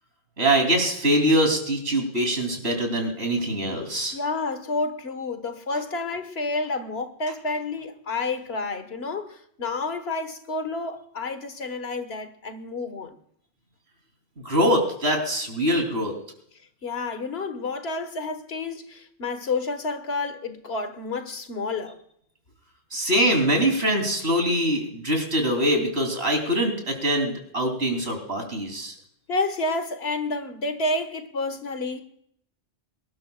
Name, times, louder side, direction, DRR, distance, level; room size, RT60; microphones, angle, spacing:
voice 1, 0.4-4.2 14.5-16.1 22.9-28.9, right 1 dB, 90° right, 3.5 m, -23 dB
voice 2, 4.1-13.2 16.5-22.0 29.3-32.0, left 3 dB, 85° left, 1.6 m, -30 dB
24.5 x 12.0 x 2.4 m
omnidirectional pair, 1.0 m